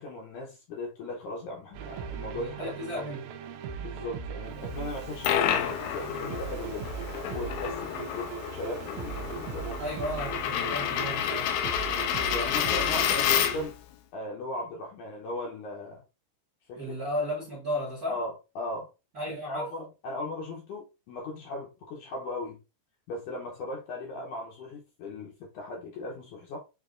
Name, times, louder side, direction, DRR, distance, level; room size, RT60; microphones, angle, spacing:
voice 1, 0.0-3.1 3.8-6.9 7.3-9.8 12.3-13.8 14.1-16.0 16.7-17.0 18.1-18.9 19.3-22.6 23.1-26.6, left 2 dB, 70° left, 1.9 m, -37 dB
sound 1, 1.7-13.7, right 7 dB, 90° right, 2.6 m, -39 dB
voice 2, 2.3-3.3 5.5-5.8 9.8-11.6 16.7-18.2 19.1-19.7, left 1 dB, 45° right, 1.2 m, -34 dB
Coin (dropping), 4.9-13.8, left 9 dB, 90° left, 2.5 m, -30 dB
6.9 x 2.8 x 2.4 m
omnidirectional pair, 4.3 m